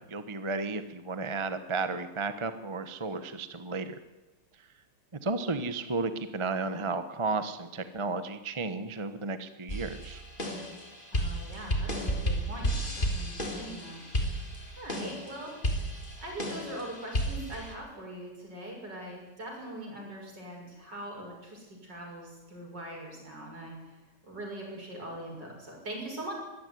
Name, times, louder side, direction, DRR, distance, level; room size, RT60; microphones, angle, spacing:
voice 1, 0.0-3.9 5.2-10.2, right 3 dB, 25° right, 10 dB, 0.7 m, -33 dB
sound 1, 9.7-17.7, equal, 25° left, 3.4 m, -33 dB
voice 2, 11.1-14.0 14.7-15.6 16.2-23.7 24.2-26.3, right 1 dB, 55° right, 0 dB, 7.2 m, -42 dB
22.0 x 15.5 x 9.6 m, 1.1 s
omnidirectional pair, 2.3 m